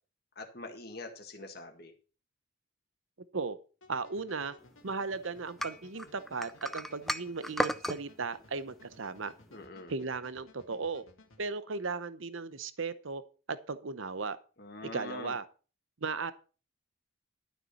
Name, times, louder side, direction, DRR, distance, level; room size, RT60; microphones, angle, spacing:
voice 1, 0.4-1.9 9.5-9.9 14.6-15.3, left 2 dB, 50° left, 5 dB, 1.8 m, -44 dB
sound 1, 3.8-11.4, left 2 dB, 85° left, 2.1 m, -59 dB
voice 2, 3.9-4.5 4.8-9.3 9.9-11.0 11.4-13.2 13.5-14.4 14.8-15.4 16.0-16.3, right 4 dB, 75° right, 14 dB, 0.8 m, -36 dB
sound 2, 5.6-8.0, equal, ahead, 0.4 m, -34 dB
12.5 x 6.8 x 5.5 m, 0.35 s
head